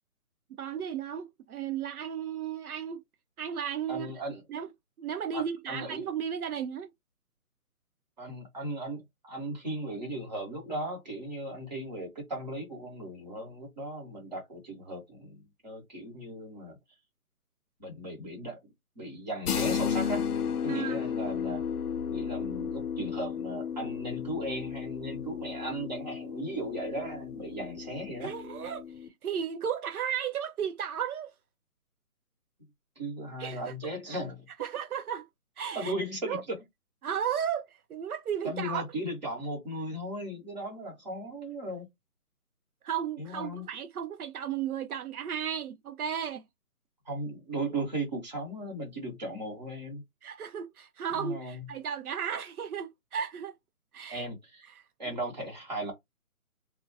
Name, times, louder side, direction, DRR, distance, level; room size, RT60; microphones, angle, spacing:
voice 1, 0.6-3.0 3.4-4.1 4.5-4.7 5.0-6.9 20.7-21.0 28.2-31.3 33.4-33.7 34.6-35.3 35.6-35.9 36.2-36.4 37.0-38.8 42.8-46.4 50.2-53.5 53.9-54.3 54.7-54.8, right 8 dB, 75° right, 0.5 m, -34 dB
voice 2, 3.9-4.4 5.3-6.0 8.2-16.8 17.8-18.6 19.0-20.2 20.6-21.6 22.1-28.3 33.0-34.5 35.7-36.6 38.4-41.9 43.2-43.6 47.0-50.0 51.2-51.7 54.1-54.7 55.0-55.9, right 1 dB, 30° right, 1.0 m, -37 dB
sound 1, 19.5-29.1, left 7 dB, 85° left, 0.6 m, -34 dB
2.3 x 2.1 x 2.6 m
hypercardioid pair, 170°, 44 cm